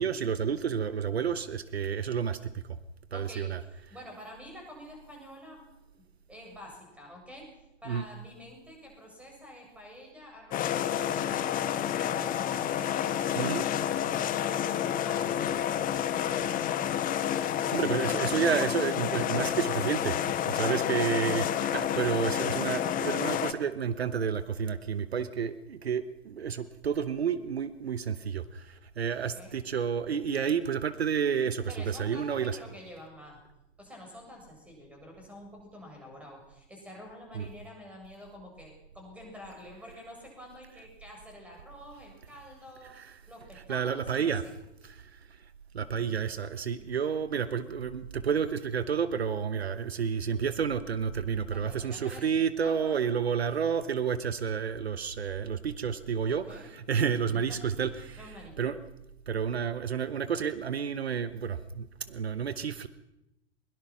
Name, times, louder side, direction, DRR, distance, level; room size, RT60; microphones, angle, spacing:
voice 1, 0.0-2.6 3.1-3.6 7.9-8.0 13.3-13.6 17.7-32.6 37.3-37.5 42.9-43.1 43.7-44.4 44.8-45.2 45.7-58.2 58.6-58.8 59.3-62.9, right 7 dB, 70° right, 13 dB, 1.1 m, -30 dB
voice 2, 3.1-6.0 6.3-12.9 20.7-21.1 29.2-29.6 31.7-33.4 33.8-42.9 43.3-44.5 51.4-52.3 52.6-53.1 56.3-56.7 57.3-58.7, left 1 dB, 5° right, 1 dB, 7.8 m, -49 dB
sound 1, 10.5-23.5, left 10 dB, 25° left, 1.4 m, -29 dB
22.0 x 22.0 x 6.0 m, 0.89 s
figure-of-eight pair, 95°, 32 cm